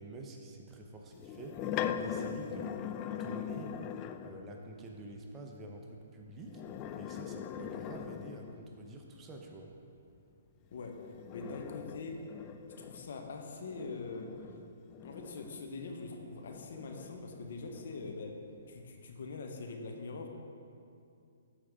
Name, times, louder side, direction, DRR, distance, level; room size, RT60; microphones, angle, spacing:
voice 1, 0.0-1.7 1.9-2.8 3.2-3.8 4.2-6.6 7.0-9.7, right 2 dB, 20° right, 1 dB, 0.8 m, -47 dB
Moving chair, 1.1-4.5 6.4-8.8 10.7-15.9 16.5-18.2, left 8 dB, 30° left, 0.3 m, -41 dB
voice 2, 11.3-12.2 12.8-14.3 15.0-18.4 18.7-20.3, left 3 dB, 65° left, 3 dB, 1.0 m, -43 dB
12.5 x 4.7 x 3.7 m, 2.5 s
hypercardioid pair, 135°, 0 cm